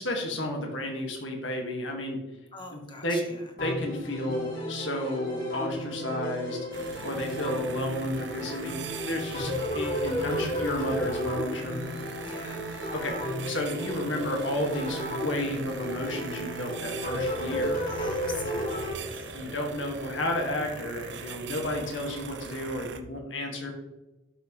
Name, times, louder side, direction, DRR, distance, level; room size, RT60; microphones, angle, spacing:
voice 1, 0.0-2.2 2.7-3.2 3.6-11.8 12.9-17.8 19.3-23.7, left 1 dB, 75° left, 2 dB, 1.8 m, -32 dB
voice 2, 2.5-3.5 12.2-12.6 17.9-19.5, left 3 dB, 25° left, 2 dB, 1.4 m, -44 dB
sound 1, 3.6-18.9, equal, 50° left, 2.9 m, -33 dB
sound 2, 6.7-23.0, right 5 dB, 65° right, 0.7 m, -41 dB
12.0 x 6.0 x 3.2 m, 1.0 s
head